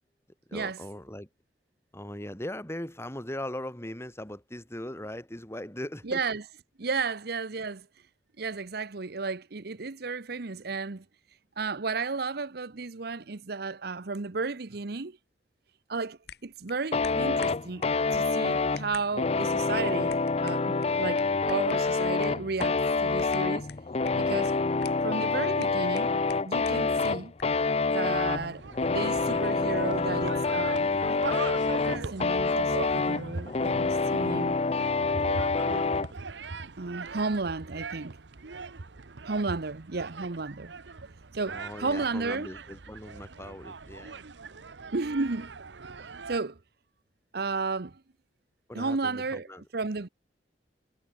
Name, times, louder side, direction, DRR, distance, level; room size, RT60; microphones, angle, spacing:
voice 1, 0.5-1.3 1.9-6.2 29.1-29.4 41.5-44.2 48.7-49.6, left 1 dB, 15° left, 4.1 m, -39 dB
voice 2, 6.0-6.4 6.8-7.9 8.4-11.0 11.6-15.2 15.9-17.9 18.1-23.7 24.2-24.5 25.0-27.3 27.9-28.6 28.9-31.2 31.8-34.6 35.3-35.4 36.8-38.2 39.2-40.7 41.3-42.5 44.9-45.6 46.3-46.6 47.3-48.0 48.7-50.1, right 4 dB, 65° right, 0.9 m, -33 dB
sound 1, 16.2-27.6, left 7 dB, 65° left, 3.4 m, -51 dB
sound 2, 16.9-36.1, left 4 dB, 35° left, 0.7 m, -27 dB
sound 3, 28.3-46.4, right 4 dB, 90° right, 1.0 m, -41 dB
head